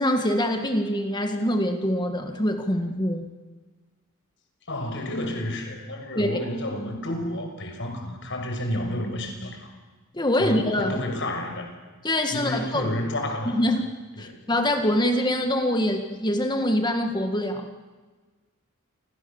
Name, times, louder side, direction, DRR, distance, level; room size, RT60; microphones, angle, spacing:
voice 1, 0.0-3.3 6.2-6.3 10.1-11.0 12.0-12.9 13.5-13.9 14.2-17.7, left 1 dB, 20° left, 5 dB, 1.8 m, -24 dB
voice 2, 4.7-9.7 10.4-11.7 12.3-13.6 14.2-14.4, left 1 dB, 60° left, 4 dB, 6.1 m, -30 dB
29.5 x 26.0 x 7.2 m, 1.4 s
head